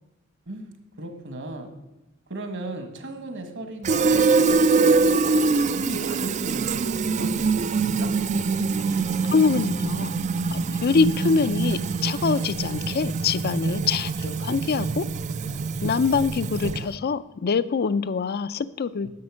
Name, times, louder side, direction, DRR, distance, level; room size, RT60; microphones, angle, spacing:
voice 1, 0.5-1.7 2.3-8.1 19.0-19.1, right 2 dB, 60° right, 6 dB, 1.6 m, -37 dB
Fill (with liquid), 3.8-17.0, right 4 dB, 35° right, 0.4 m, -24 dB
voice 2, 9.3-10.2 10.5-15.0 15.8-19.1, left 5 dB, 50° left, 16 dB, 0.4 m, -24 dB
10.5 x 7.2 x 6.2 m, 0.97 s
head